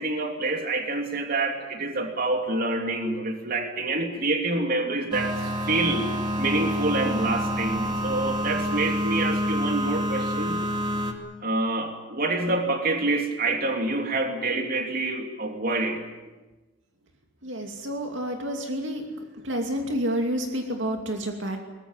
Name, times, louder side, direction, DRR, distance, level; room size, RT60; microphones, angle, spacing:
voice 1, 0.0-6.1 6.4-10.6 11.4-16.0, right 2 dB, 45° right, 4 dB, 3.0 m, -27 dB
sound 1, 5.1-11.1, equal, 25° right, 2.5 m, -27 dB
voice 2, 17.4-19.0 19.4-21.6, equal, 65° right, 3 dB, 2.7 m, -29 dB
23.0 x 20.5 x 9.1 m, 1.2 s
head